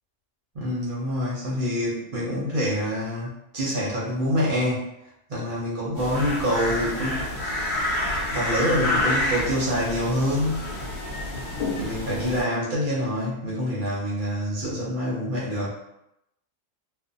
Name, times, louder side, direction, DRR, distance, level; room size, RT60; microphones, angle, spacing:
voice 1, 0.5-4.8 5.3-7.2 8.3-10.7 11.8-15.7, equal, 50° right, -6 dB, 0.6 m, -26 dB
sound 1, 5.9-12.4, left 1 dB, 40° left, 0.9 m, -28 dB
2.5 x 2.0 x 2.5 m, 0.84 s
omnidirectional pair, 1.5 m